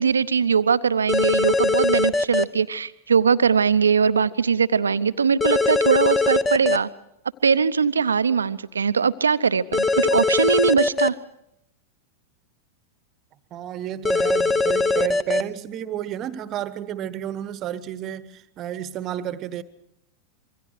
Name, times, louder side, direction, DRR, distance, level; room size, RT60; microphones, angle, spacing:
voice 1, 0.0-6.9 7.4-11.2, right 6 dB, 75° right, 0.7 m, -21 dB
sound 1, 1.1-2.4 5.4-6.8 9.7-11.1 14.0-15.4, left 3 dB, 15° left, 0.9 m, -21 dB
voice 2, 13.5-19.6, right 11 dB, 35° right, 1.1 m, -31 dB
27.0 x 23.0 x 4.9 m
figure-of-eight pair, 90°, 0 cm